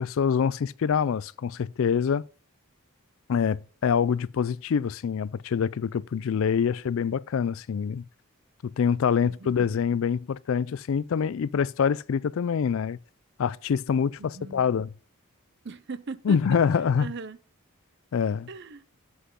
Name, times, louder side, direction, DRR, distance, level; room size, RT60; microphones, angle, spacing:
voice 1, 0.0-2.3 3.3-8.0 8.6-13.0 13.4-14.9 16.3-17.1 18.1-18.5, left 7 dB, 65° left, 0.3 m, -25 dB
voice 2, 9.2-9.8 14.2-14.6 15.6-16.4 17.0-17.4 18.5-18.9, right 4 dB, 50° right, 0.6 m, -39 dB
8.3 x 8.0 x 3.7 m
head